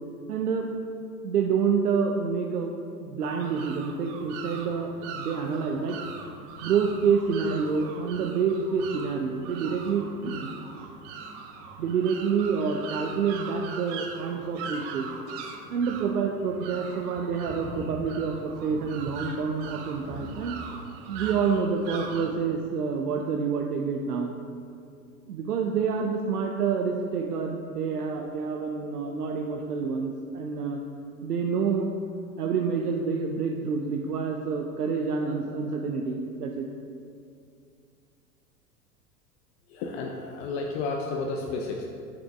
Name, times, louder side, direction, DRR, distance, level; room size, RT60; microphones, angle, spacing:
voice 1, 0.3-0.7 1.2-2.7 3.0-6.0 6.6-10.9 11.8-15.1 15.7-20.6 21.1-24.4 25.3-30.8 31.2-31.9 32.4-36.7, right 5 dB, 80° right, 2 dB, 0.7 m, -28 dB
sound 1, 3.2-22.3, right 5 dB, 40° right, 0.8 m, -40 dB
voice 2, 39.7-41.8, left 3 dB, 45° left, 1 dB, 0.7 m, -31 dB
7.8 x 5.9 x 3.5 m, 2.4 s
figure-of-eight pair, 90°, 46 cm